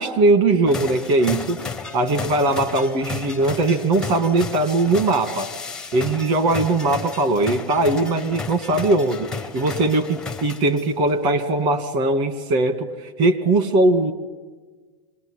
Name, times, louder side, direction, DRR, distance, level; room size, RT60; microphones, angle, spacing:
voice 1, 0.0-1.6 1.9-5.5 5.9-9.3 9.5-12.9 13.2-14.1, right 2 dB, 40° right, 9 dB, 2.3 m, -20 dB
sound 1, 0.7-11.1, left 4 dB, 5° left, 0.7 m, -33 dB
26.0 x 20.0 x 10.0 m, 1.4 s
supercardioid pair, 160°, 19 cm